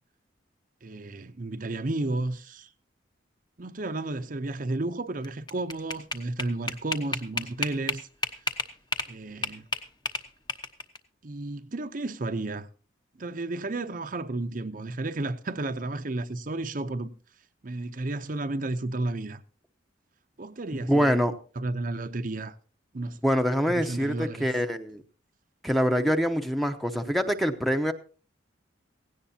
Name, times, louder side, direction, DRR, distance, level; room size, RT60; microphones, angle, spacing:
voice 1, 0.8-2.7 3.6-8.1 9.1-9.7 11.2-12.7 13.2-17.1 17.6-19.4 20.4-21.2 21.5-22.6 22.9-23.2 23.6-24.5, right 2 dB, 45° right, 0.7 m, -32 dB
sound 1, 5.2-9.1 9.4-11.0, left 3 dB, 20° left, 1.0 m, -31 dB
voice 2, 20.7-21.3 23.2-25.0 25.6-27.9, equal, ahead, 0.8 m, -25 dB
17.0 x 16.5 x 2.8 m
head